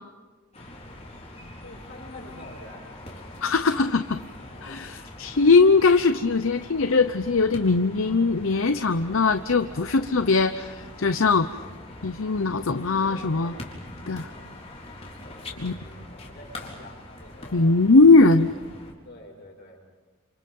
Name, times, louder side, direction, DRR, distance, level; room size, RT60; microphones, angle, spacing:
sound 1, 0.5-18.9, left 1 dB, 30° left, 4.1 m, -43 dB
voice 1, 1.5-3.1 4.4-4.9 9.7-10.0 12.7-12.9 14.2-15.1 15.4-17.8 18.2-18.5 19.0-19.8, left 1 dB, 50° left, 0 dB, 7.1 m, -47 dB
voice 2, 3.4-4.2 4.6-11.5 12.0-13.6 14.1-14.3 15.6-15.7 17.5-18.5, left 3 dB, 75° left, 9 dB, 0.8 m, -20 dB
29.5 x 28.0 x 5.5 m, 1.3 s
head